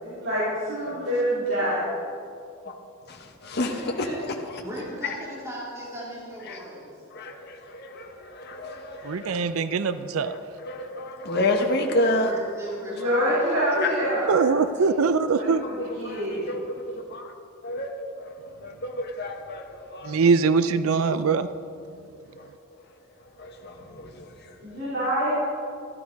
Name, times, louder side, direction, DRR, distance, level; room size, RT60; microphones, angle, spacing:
voice 1, 0.0-1.9 3.7-4.1 12.8-14.3 15.3-16.5 24.6-25.3, equal, 60° right, -11 dB, 4.1 m, -26 dB
voice 2, 3.1-4.6 6.5-6.6 7.1-9.5 10.1-12.3 13.8-13.9 15.8-17.3 17.6-20.1 22.3-22.5 23.4-24.5, left 1 dB, 50° left, 2 dB, 1.2 m, -30 dB
voice 3, 4.6-7.0 12.1-15.1, right 1 dB, 15° right, -7 dB, 2.8 m, -38 dB
voice 4, 9.0-10.4 14.3-15.6 20.0-21.5, right 5 dB, 85° right, 12 dB, 0.5 m, -22 dB
14.0 x 11.5 x 5.2 m, 2.4 s
head